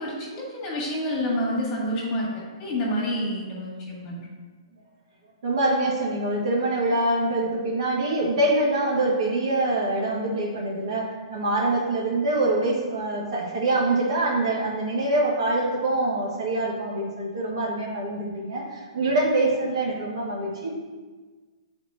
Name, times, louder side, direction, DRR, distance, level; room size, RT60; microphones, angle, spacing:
voice 1, 0.0-2.3 2.6-4.2, equal, 25° left, -4 dB, 1.7 m, -28 dB
voice 2, 5.4-20.7, right 2 dB, 60° right, -4 dB, 1.7 m, -25 dB
9.2 x 4.4 x 2.7 m, 1.4 s
hypercardioid pair, 165°, 3 cm